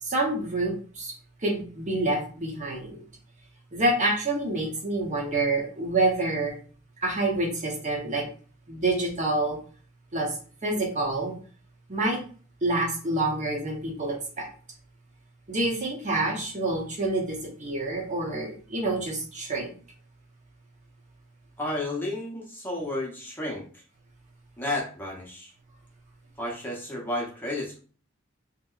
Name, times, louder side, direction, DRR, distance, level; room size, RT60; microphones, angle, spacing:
voice 1, 0.0-1.1 1.4-3.0 3.7-6.5 7.0-8.2 8.7-9.6 10.1-10.4 10.6-11.4 11.9-12.2 12.6-14.5 15.5-19.7, right 2 dB, 35° right, 0 dB, 0.8 m, -27 dB
voice 2, 21.6-23.8 24.6-25.5 26.4-27.8, left 1 dB, 10° left, -3 dB, 0.7 m, -32 dB
3.3 x 2.8 x 2.4 m, 0.41 s
head